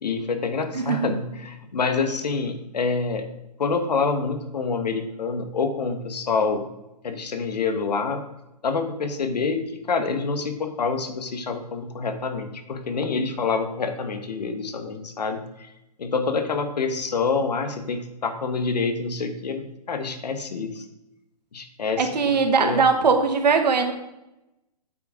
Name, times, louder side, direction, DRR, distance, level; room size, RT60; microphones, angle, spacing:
voice 1, 0.0-3.3 3.6-6.7 7.0-8.2 8.6-15.7 16.0-20.8 21.5-22.1 22.6-22.9, left 4 dB, 80° left, 8 dB, 1.5 m, -27 dB
voice 2, 0.7-1.2 22.0-23.9, right 5 dB, 85° right, 5 dB, 1.7 m, -20 dB
8.3 x 6.1 x 5.0 m, 0.92 s
hypercardioid pair, 180°, 21 cm